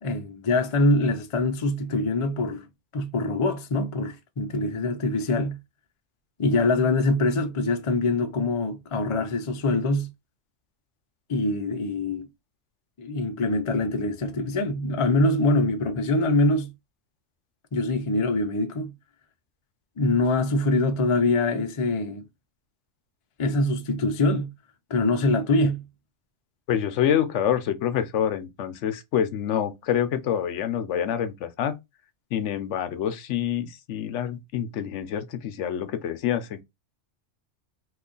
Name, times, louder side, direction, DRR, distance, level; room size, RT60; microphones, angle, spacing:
voice 1, 0.0-2.7 2.9-5.6 6.4-10.1 11.3-12.3 13.0-16.7 17.7-18.9 20.0-22.2 23.4-24.5 24.9-25.8, left 2 dB, 45° left, 0.4 m, -24 dB
voice 2, 26.7-31.8 32.3-36.6, left 9 dB, 75° left, 0.9 m, -27 dB
3.0 x 2.4 x 3.8 m
omnidirectional pair, 1.3 m